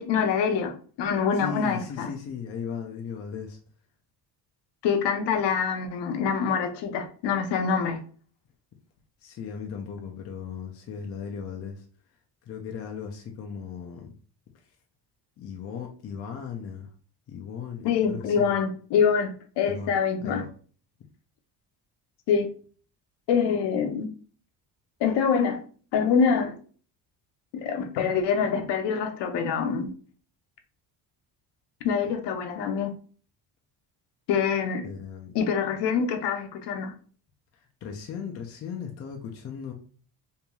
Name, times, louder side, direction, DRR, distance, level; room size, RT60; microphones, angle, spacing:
voice 1, 0.0-2.1 4.8-8.0 17.8-20.4 22.3-22.5 23.3-24.1 25.0-25.6 25.9-26.6 27.5-29.9 31.8-32.9 34.3-34.9 35.3-36.9, left 6 dB, 80° left, 0.7 m, -25 dB
voice 2, 1.3-3.6 9.2-11.9 12.5-14.1 15.4-16.9 17.3-18.5 19.7-20.5 34.8-35.3 37.5-39.7, left 7 dB, 35° left, 0.4 m, -37 dB
3.0 x 2.7 x 2.2 m
cardioid pair, 150°, 42 cm